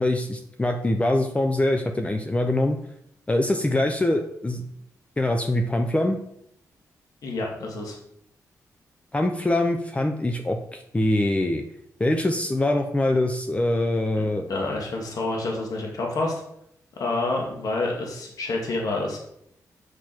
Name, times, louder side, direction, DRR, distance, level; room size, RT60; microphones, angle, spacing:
voice 1, 0.0-2.8 3.3-4.6 5.2-6.2 9.1-11.6 12.0-14.5, left 1 dB, 20° left, 4 dB, 0.9 m, -23 dB
voice 2, 7.2-8.0 14.2-16.4 17.0-19.2, left 2 dB, 70° left, 0 dB, 2.1 m, -28 dB
7.4 x 6.2 x 4.6 m, 0.74 s
cardioid pair, 70°, 6 cm